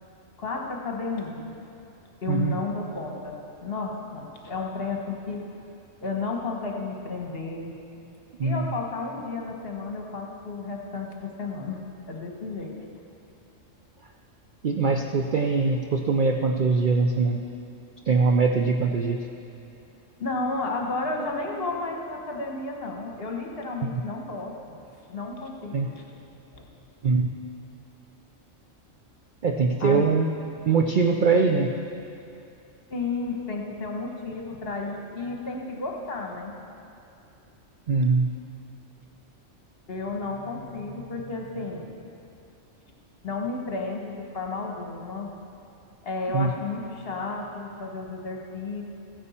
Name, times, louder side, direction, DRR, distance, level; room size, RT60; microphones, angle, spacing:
voice 1, 0.4-1.5 2.2-5.4 6.0-7.7 8.4-11.8 12.1-12.7 20.2-24.8 25.1-26.0 26.5-26.7 29.8-30.1 32.9-36.5 39.9-41.9 43.2-45.3 46.0-48.8, left 3 dB, 50° left, 0 dB, 1.4 m, -32 dB
voice 2, 14.6-17.4 18.1-19.2 23.8-23.9 25.7-25.9 27.0-27.3 29.4-30.2 30.7-31.7 37.9-38.3 46.3-46.5, right 4 dB, 60° right, 3 dB, 0.5 m, -22 dB
15.0 x 9.6 x 4.3 m, 2.6 s
omnidirectional pair, 1.4 m